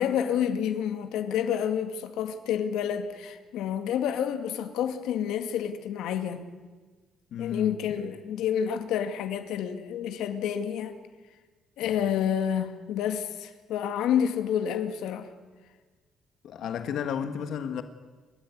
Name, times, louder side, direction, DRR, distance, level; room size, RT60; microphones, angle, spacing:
voice 1, 0.0-6.4 7.4-11.0 11.8-15.3, left 9 dB, 90° left, 2.2 m, -29 dB
voice 2, 7.3-8.1 11.8-12.1 16.4-17.8, left 8 dB, 55° left, 1.5 m, -33 dB
29.5 x 13.5 x 9.6 m
cardioid pair, 170°, 0 cm